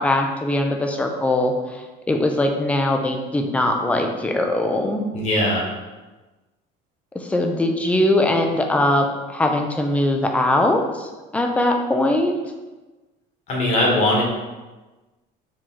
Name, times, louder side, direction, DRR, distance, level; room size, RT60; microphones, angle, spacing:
voice 1, 0.0-5.2 7.1-12.3, left 1 dB, 5° left, 3 dB, 0.3 m, -21 dB
voice 2, 5.1-5.6 13.5-14.2, left 1 dB, 40° left, -2 dB, 1.2 m, -19 dB
4.9 x 2.9 x 3.6 m, 1.2 s
cardioid pair, 170°, 19 cm